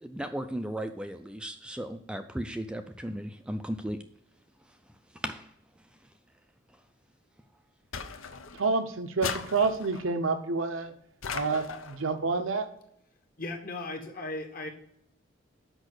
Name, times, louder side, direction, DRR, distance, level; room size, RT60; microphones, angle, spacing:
voice 1, 0.0-4.0 5.2-5.5, right 1 dB, 5° right, 7 dB, 0.3 m, -36 dB
sound 1, 7.9-8.7 9.2-10.1 11.2-12.0, left 6 dB, 80° left, 0.7 m, -37 dB
voice 2, 8.5-10.9 11.3-12.7, right 4 dB, 80° right, 8 dB, 0.8 m, -28 dB
voice 3, 13.4-14.7, left 2 dB, 45° left, 5 dB, 1.3 m, -36 dB
6.3 x 5.3 x 6.4 m, 0.73 s
head